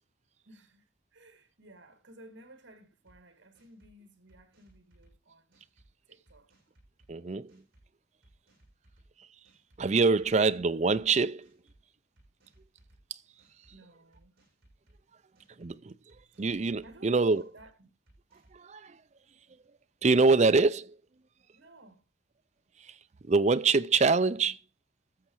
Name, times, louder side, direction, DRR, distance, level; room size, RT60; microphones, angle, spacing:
voice 1, 0.5-5.5 6.1-6.5 13.7-14.3 16.8-17.9 21.5-22.0, right 1 dB, 70° right, 2.1 m, -55 dB
sound 1, 3.1-3.2 3.5-3.9 4.3-5.1 5.5-5.9 6.3-7.1 7.5-7.8 8.2-9.1 9.4-9.8 10.2-11.0 11.4-11.8 12.2-13.0 13.4-13.7 14.1-15.0 15.3-15.7 16.1-16.9 17.3-17.7 18.1-18.6, right 1 dB, 50° right, 7.9 m, -63 dB
voice 2, 7.1-7.6 9.8-11.5 13.1-13.2 15.6-16.0 16.4-17.4 18.5-19.0 20.0-21.0 22.8-23.0 23.2-24.6, right 4 dB, 35° right, 0.5 m, -25 dB
13.5 x 7.2 x 4.6 m
head